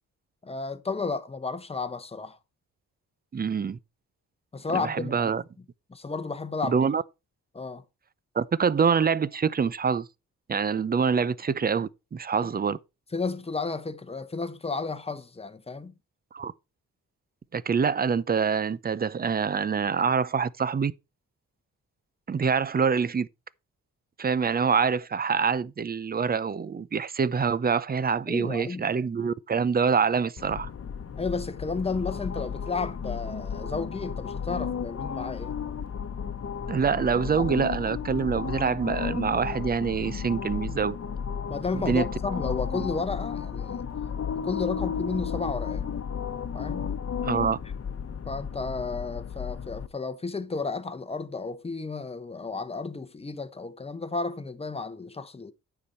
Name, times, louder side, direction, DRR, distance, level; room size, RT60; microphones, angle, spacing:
voice 1, 0.4-2.4 4.5-5.3 5.9-6.9 7.5-7.8 12.4-12.5 13.1-15.9 28.3-28.9 31.1-35.6 41.5-43.9 44.3-45.9 46.5-46.9 48.3-55.5, left 4 dB, 20° left, 0.9 m, -32 dB
voice 2, 3.3-3.8 4.7-5.4 6.7-7.0 8.4-10.1 10.5-12.8 16.3-16.5 17.5-20.9 22.3-23.3 24.2-30.7 36.7-41.0 41.7-42.1 47.2-47.6, right 6 dB, 30° right, 0.5 m, -25 dB
sound 1, 30.4-49.9, left 7 dB, 45° left, 1.1 m, -33 dB
9.5 x 6.9 x 4.3 m
cardioid pair, 85°, 33 cm